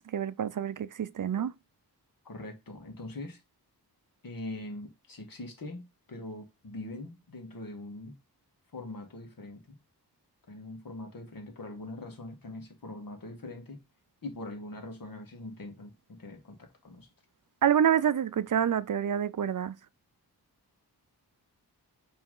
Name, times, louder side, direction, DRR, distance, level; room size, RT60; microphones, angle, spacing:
voice 1, 0.0-1.5 17.6-19.8, right 9 dB, 55° right, 0.5 m, -27 dB
voice 2, 2.2-3.4 4.2-8.2 8.7-9.8 10.5-13.8 14.2-17.1, left 2 dB, 60° left, 1.9 m, -42 dB
5.9 x 3.5 x 5.5 m
wide cardioid pair, 105°, 39 cm